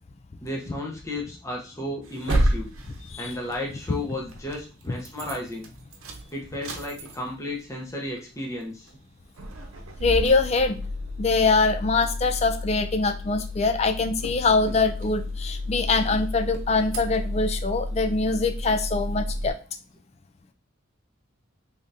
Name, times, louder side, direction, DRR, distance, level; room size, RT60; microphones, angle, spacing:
voice 1, 0.4-2.7 3.2-5.7 6.3-8.9, left 1 dB, 15° left, 0 dB, 0.8 m, -33 dB
sound 1, 2.0-4.6 5.0-5.4 5.6-7.5 7.8-7.9 8.2-8.3 8.9-9.1 9.4-19.5, equal, 85° right, 0.8 m, -31 dB
voice 2, 10.0-10.8 11.2-19.6, left 3 dB, 30° left, 9 dB, 0.3 m, -23 dB
3.8 x 3.4 x 2.6 m, 0.35 s
head